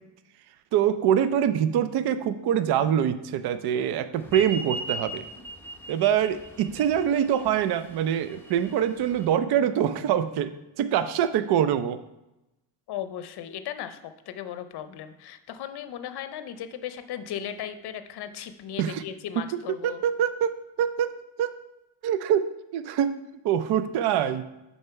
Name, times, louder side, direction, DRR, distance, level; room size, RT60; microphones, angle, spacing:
voice 1, 0.7-5.2 5.9-12.0 18.8-19.0 19.8-21.1 21.4-21.5 22.0-23.2 23.4-24.4, right 9 dB, 55° right, 12 dB, 0.5 m, -24 dB
sound 1, 4.2-9.3, right 2 dB, 5° left, 0.7 m, -38 dB
voice 2, 12.9-20.0, left 10 dB, 55° left, 10 dB, 0.6 m, -36 dB
6.7 x 4.3 x 4.5 m, 0.94 s
cardioid pair, 145°, 46 cm